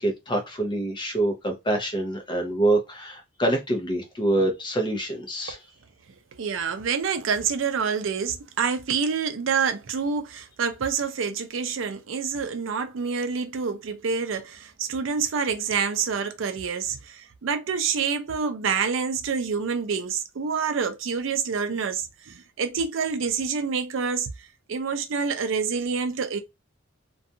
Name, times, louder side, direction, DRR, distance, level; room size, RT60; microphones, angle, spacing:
voice 1, 0.0-5.6, right 1 dB, 25° left, 0.6 m, -25 dB
voice 2, 6.4-24.3 24.7-26.4, right 6 dB, 70° right, 0.5 m, -27 dB
2.5 x 2.2 x 2.7 m
head